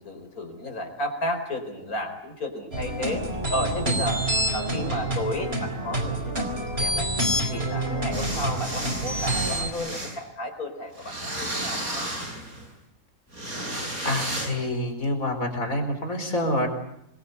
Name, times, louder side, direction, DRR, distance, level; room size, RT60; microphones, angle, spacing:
voice 1, 0.0-3.2 3.5-4.2 4.5-7.1 7.5-12.1, left 1 dB, 90° left, 5 dB, 5.1 m, -32 dB
sound 1, 2.7-9.7, right 1 dB, 45° right, 4.5 m, -27 dB
sound 2, 8.1-10.2 11.0-12.7 13.3-14.5, right 1 dB, 85° right, 7.9 m, -33 dB
voice 2, 14.0-16.7, left 1 dB, 70° left, 6 dB, 4.9 m, -27 dB
27.0 x 23.5 x 8.2 m, 0.78 s
omnidirectional pair, 1.5 m